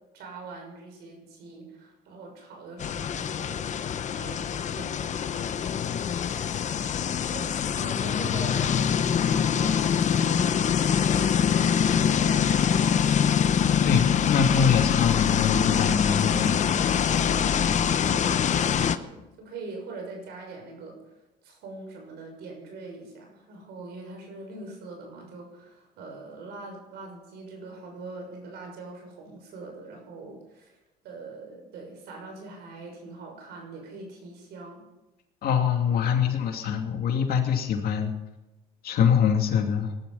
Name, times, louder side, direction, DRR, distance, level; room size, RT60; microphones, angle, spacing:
voice 1, 0.1-5.5 7.3-13.1 18.0-21.0 21.4-30.8 31.0-34.8, right 3 dB, 80° right, 2 dB, 6.5 m, -42 dB
sound 1, 2.8-19.0, left 8 dB, 45° left, 0.9 m, -24 dB
voice 2, 13.8-16.6 35.4-38.1 38.8-39.9, left 7 dB, 65° left, 4 dB, 2.6 m, -24 dB
18.5 x 12.5 x 5.7 m, 1.0 s
cardioid pair, 110°, 17 cm